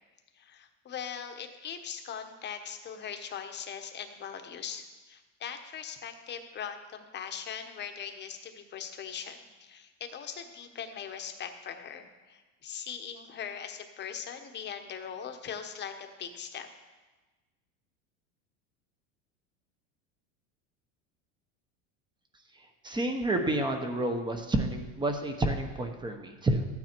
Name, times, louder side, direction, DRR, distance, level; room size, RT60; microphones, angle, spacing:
voice 1, 0.3-16.7, left 7 dB, 30° left, 6 dB, 1.1 m, -40 dB
voice 2, 22.8-26.7, right 2 dB, 10° right, 5 dB, 0.9 m, -29 dB
13.5 x 9.3 x 4.5 m, 1.2 s
supercardioid pair, 135°, 38 cm